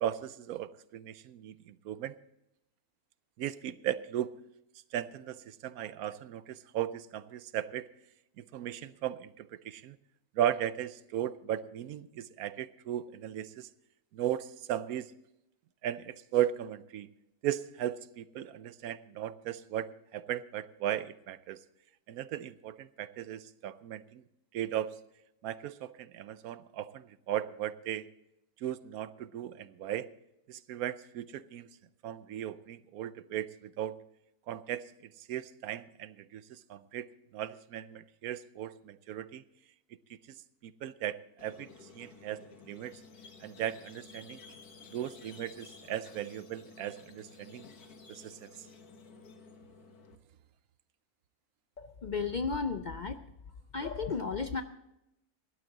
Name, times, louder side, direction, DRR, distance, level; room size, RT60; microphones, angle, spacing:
voice 1, 0.0-2.2 3.4-4.3 4.9-7.9 8.4-10.0 10.3-13.7 14.1-15.1 15.8-17.1 17.4-21.6 22.1-24.2 24.5-25.0 25.4-28.1 28.6-30.1 30.5-31.7 32.0-34.0 34.5-34.9 35.2-39.4 40.1-40.2 40.6-41.7 41.9-43.0 43.4-44.4 44.9-47.6 48.1-48.5, right 11 dB, 75° right, 15 dB, 1.1 m, -36 dB
Squeak, 41.4-50.2, left 4 dB, 85° left, 1.8 m, -53 dB
voice 2, 51.8-53.2 53.7-54.6, left 5 dB, 65° left, 8 dB, 0.4 m, -34 dB
16.5 x 11.5 x 4.0 m, 0.85 s
omnidirectional pair, 1.6 m